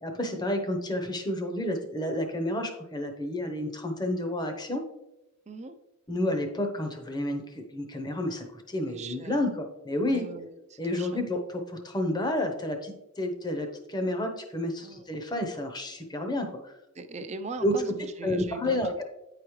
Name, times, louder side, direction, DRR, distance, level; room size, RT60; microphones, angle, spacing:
voice 1, 0.0-4.8 6.1-10.3 10.8-16.7 17.6-17.8 18.2-19.0, left 1 dB, 20° left, 5 dB, 0.8 m, -30 dB
voice 2, 8.9-9.5 10.1-11.2 14.8-15.1 16.9-18.8, right 3 dB, 30° right, 8 dB, 0.5 m, -40 dB
9.2 x 4.9 x 3.1 m, 0.93 s
head